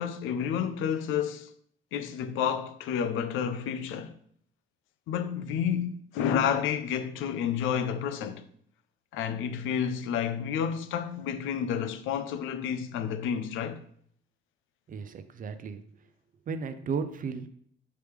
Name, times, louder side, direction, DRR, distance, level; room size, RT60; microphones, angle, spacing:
voice 1, 0.0-1.5 1.9-4.2 5.1-8.5 9.1-13.8, left 8 dB, 90° left, 0.4 m, -30 dB
voice 2, 14.9-15.8 16.5-17.5, right 5 dB, 45° right, 0.4 m, -34 dB
4.7 x 3.2 x 3.4 m
cardioid pair, 90°, 20 cm